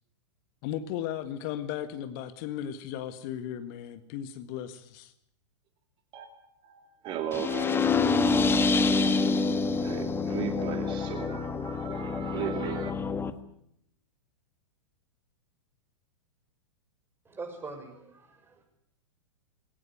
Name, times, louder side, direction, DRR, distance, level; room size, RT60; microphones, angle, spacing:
voice 1, 0.6-5.1, left 10 dB, 45° left, 1.7 m, -36 dB
voice 2, 6.6-9.4 9.7-12.9, right 9 dB, 30° right, 2.6 m, -37 dB
sound 1, 7.3-13.3, left 4 dB, 15° left, 1.6 m, -27 dB
voice 3, 17.2-18.6, right 3 dB, 15° right, 6.8 m, -42 dB
21.5 x 18.5 x 9.3 m
figure-of-eight pair, 100°, 16 cm